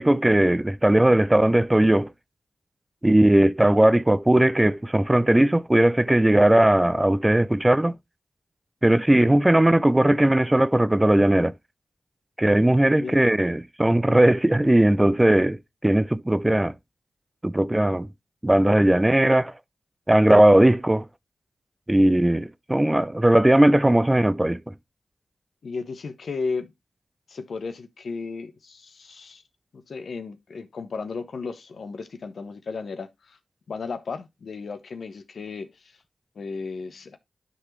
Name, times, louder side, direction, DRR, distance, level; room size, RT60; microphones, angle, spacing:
voice 1, 0.0-2.1 3.0-7.9 8.8-11.5 12.4-16.7 17.4-18.1 18.4-19.5 20.1-21.1 21.9-24.6, right 1 dB, 15° right, 0.4 m, -18 dB
voice 2, 25.6-26.7 27.3-29.4 29.7-33.4 33.7-36.0 36.3-37.2, left 4 dB, 75° left, 0.9 m, -34 dB
12.0 x 4.0 x 3.1 m
cardioid pair, 45°, 0 cm